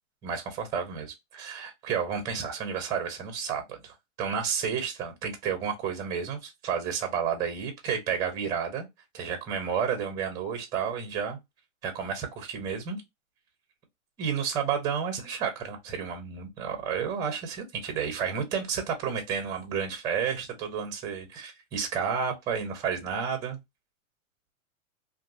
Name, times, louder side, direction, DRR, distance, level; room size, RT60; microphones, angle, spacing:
voice 1, 0.2-8.9 9.1-11.4 11.8-13.0 14.2-23.6, right 7 dB, 10° right, 0.4 m, -31 dB
2.9 x 2.4 x 2.6 m
hypercardioid pair, 145°, 41 cm